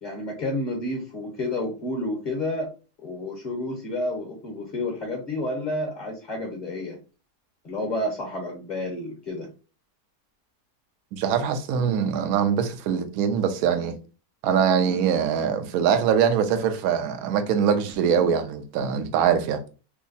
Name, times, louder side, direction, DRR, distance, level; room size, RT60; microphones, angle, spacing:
voice 1, 0.0-2.7 3.0-7.0 7.6-9.5, left 1 dB, 35° left, 1.0 m, -30 dB
voice 2, 11.1-14.0 14.4-19.6, right 7 dB, 70° right, 1.0 m, -23 dB
3.3 x 2.0 x 3.9 m
omnidirectional pair, 1.7 m